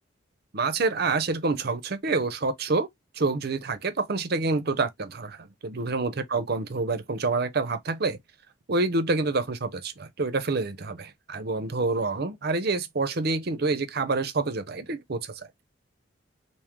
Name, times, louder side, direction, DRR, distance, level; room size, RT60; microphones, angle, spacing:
voice 1, 0.5-2.9 3.2-5.4 5.6-8.2 8.7-15.3, right 3 dB, 55° right, 0.7 m, -27 dB
3.6 x 2.7 x 3.1 m
head